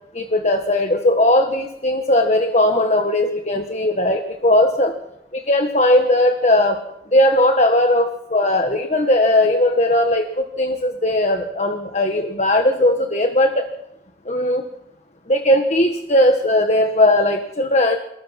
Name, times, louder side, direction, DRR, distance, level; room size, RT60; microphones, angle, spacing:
voice 1, 0.1-4.9 5.3-6.8 7.1-13.6 14.2-14.6 15.3-18.0, left 1 dB, 35° left, 5 dB, 1.4 m, -18 dB
28.5 x 19.0 x 5.9 m, 0.88 s
head